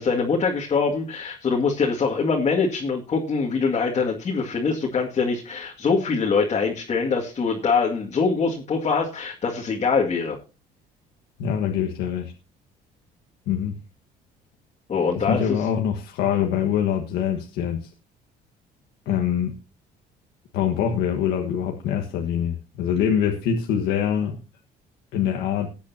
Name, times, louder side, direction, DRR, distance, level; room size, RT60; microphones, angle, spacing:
voice 1, 0.0-10.4 14.9-15.6, left 5 dB, 40° left, -1 dB, 2.2 m, -23 dB
voice 2, 11.4-12.3 13.5-13.8 15.2-17.9 19.0-19.5 20.5-24.4 25.1-25.7, left 8 dB, 90° left, 2 dB, 1.5 m, -24 dB
19.5 x 8.4 x 2.8 m, 0.30 s
cardioid pair, 110°, 17 cm